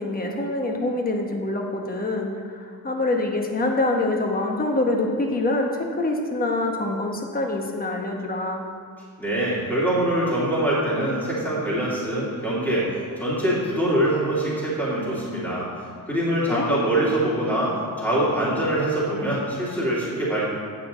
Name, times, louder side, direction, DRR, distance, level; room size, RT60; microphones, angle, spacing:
voice 1, 0.0-8.6 16.5-16.8, left 2 dB, 25° left, 2 dB, 1.0 m, -25 dB
voice 2, 9.2-12.9 13.2-15.7 16.1-20.5, right 1 dB, 5° left, -8 dB, 2.3 m, -24 dB
8.5 x 8.5 x 3.9 m, 2.2 s
cardioid pair, 145°, 36 cm